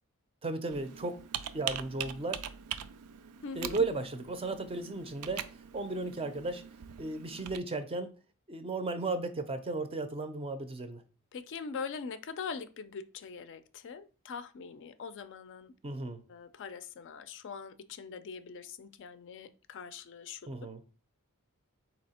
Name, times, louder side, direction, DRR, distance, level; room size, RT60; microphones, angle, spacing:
voice 1, 0.4-1.2 1.5-2.4 3.6-5.5 5.7-6.6 7.0-8.1 8.5-11.0 15.8-16.2 20.5-20.8, right 3 dB, 25° right, 0.4 m, -35 dB
Computer keyboard, 0.7-7.6, right 9 dB, 85° right, 0.4 m, -42 dB
voice 2, 3.4-3.8 11.3-15.7 16.3-20.5, left 5 dB, 55° left, 0.4 m, -42 dB
4.2 x 2.8 x 4.2 m
head